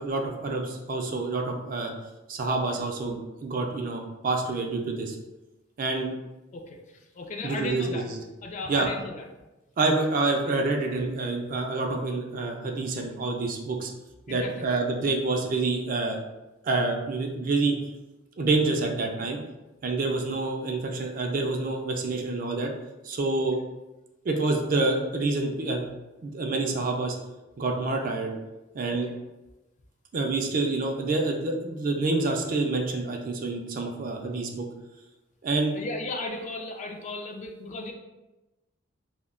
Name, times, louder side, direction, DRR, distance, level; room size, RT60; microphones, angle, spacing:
voice 1, 0.0-1.9 2.3-5.2 5.8-6.1 7.4-8.2 8.7-8.9 9.8-13.9 14.3-16.2 16.6-17.8 18.4-19.4 19.8-22.7 23.0-23.6 24.2-25.9 26.2-27.2 27.6-28.3 28.7-29.1 30.1-34.7 35.4-35.8, right 3 dB, 45° right, 2 dB, 0.4 m, -27 dB
voice 2, 7.2-8.0 8.4-9.2 14.3-14.7 20.0-20.1 28.9-29.0 35.7-37.9, left 2 dB, 40° left, 3 dB, 0.3 m, -35 dB
2.2 x 2.1 x 3.6 m, 1.0 s
head